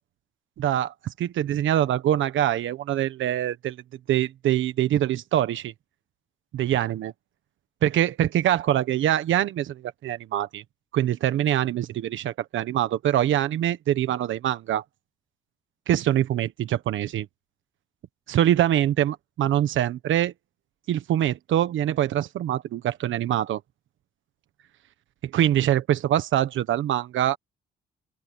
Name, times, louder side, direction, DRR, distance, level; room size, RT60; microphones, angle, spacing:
voice 1, 0.6-3.8 4.1-5.7 6.5-7.1 7.8-10.6 10.9-14.8 15.9-17.3 18.3-20.3 20.9-23.6 25.2-27.4, right 11 dB, 75° right, 1.4 m, -24 dB
open air
cardioid pair, 90°, 20 cm